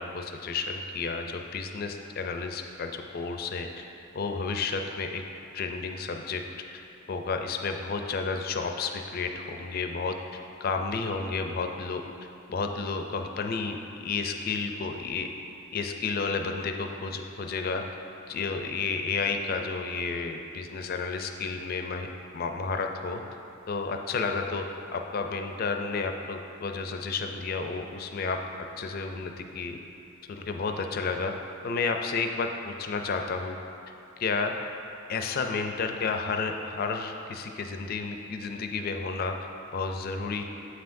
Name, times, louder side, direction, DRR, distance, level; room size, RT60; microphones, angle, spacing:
voice 1, 0.0-3.9 4.1-5.2 5.5-6.4 7.1-12.0 12.5-15.3 15.7-17.8 18.3-22.1 22.3-23.2 23.7-24.7 24.9-28.4 28.8-29.8 30.3-31.3 31.6-33.6 34.2-34.5 35.1-39.4 39.7-40.4, left 4 dB, 45° left, 5 dB, 0.4 m, -31 dB
7.8 x 5.6 x 2.6 m, 2.7 s
head